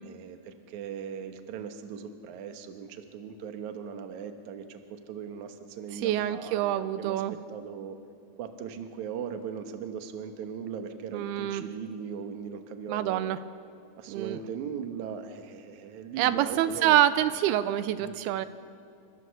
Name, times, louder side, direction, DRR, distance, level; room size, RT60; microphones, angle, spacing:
voice 1, 0.0-7.2 7.5-8.0 8.4-13.4 14.0-17.0 18.0-18.2, right 7 dB, 60° right, 6 dB, 2.3 m, -39 dB
voice 2, 6.0-7.4 11.1-11.6 12.9-13.4 14.1-14.4 16.2-18.5, right 12 dB, 90° right, 12 dB, 2.6 m, -26 dB
29.5 x 14.5 x 7.0 m, 2.4 s
omnidirectional pair, 4.4 m